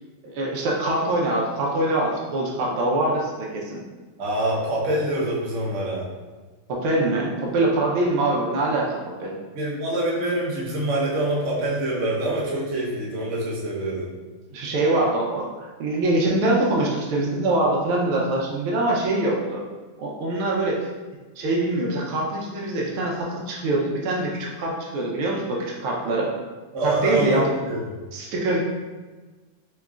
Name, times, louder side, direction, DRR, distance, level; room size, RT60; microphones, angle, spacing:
voice 1, 0.2-3.8 6.7-9.3 14.5-19.7 20.0-20.9 21.4-26.3 26.8-27.5 28.1-28.6, right 2 dB, 75° right, -2 dB, 1.5 m, -24 dB
voice 2, 4.2-6.0 9.5-14.1 26.7-27.9, right 1 dB, 55° right, -5 dB, 0.9 m, -25 dB
4.8 x 3.1 x 2.3 m, 1.3 s
omnidirectional pair, 2.4 m